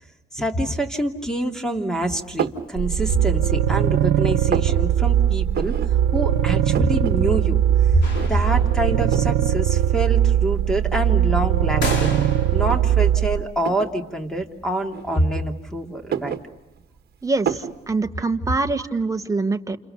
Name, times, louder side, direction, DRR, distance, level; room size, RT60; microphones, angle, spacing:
voice 1, 0.3-5.7 6.1-7.6 7.9-8.0 8.3-12.1 12.5-16.3, right 1 dB, 5° left, 4 dB, 2.8 m, -25 dB
sound 1, 2.4-2.7 3.2-3.9 4.2-4.8 5.5-5.9 6.2-6.3 6.5-7.2 7.5-7.6 8.1-8.6 9.1-9.4 10.2-10.3 10.8-12.2 12.6-12.8 13.6-14.0 14.9-15.6 15.9-17.0 17.5-17.8, right 8 dB, 55° right, 1.5 m, -29 dB
sound 2, 2.8-13.4, right 10 dB, 85° right, 0.9 m, -20 dB
sound 3, 8.0-9.0 11.8-12.8, left 3 dB, 70° left, 5.8 m, -31 dB
voice 2, 17.2-19.8, right 3 dB, 15° right, 7 dB, 1.5 m, -24 dB
29.5 x 28.5 x 6.8 m, 1.0 s
cardioid pair, 90°, 20 cm